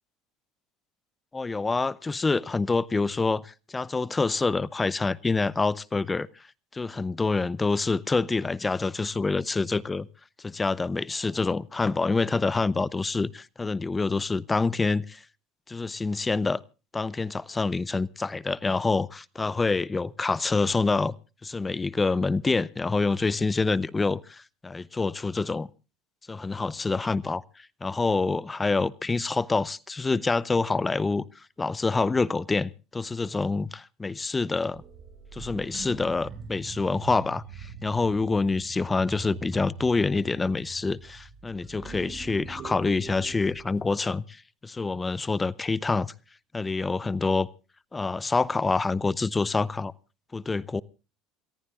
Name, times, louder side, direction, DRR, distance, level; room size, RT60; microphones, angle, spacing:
voice 1, 1.3-6.5 6.7-10.1 10.4-15.2 15.7-16.6 16.9-21.1 21.4-25.7 26.3-34.8 35.3-46.1 46.5-47.5 47.9-49.9 50.3-50.8, left 3 dB, 15° left, 0.7 m, -27 dB
sound 1, 34.7-43.8, right 5 dB, 50° right, 5.2 m, -43 dB
28.0 x 14.5 x 2.4 m
supercardioid pair, 105°, 0 cm